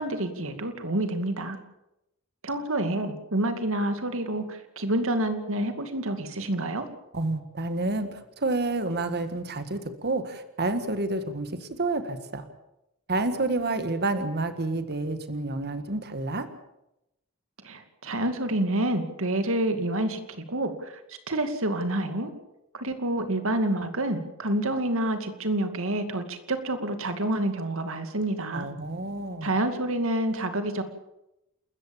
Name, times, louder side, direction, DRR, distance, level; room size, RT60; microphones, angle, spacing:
voice 1, 0.0-1.6 2.4-6.9 17.6-22.3 22.7-28.7 29.4-30.8, right 1 dB, 65° right, 8 dB, 2.4 m, -28 dB
voice 2, 7.1-12.4 13.1-16.5 28.5-29.5, right 2 dB, 50° right, 10 dB, 1.7 m, -29 dB
29.0 x 14.5 x 7.2 m, 0.89 s
head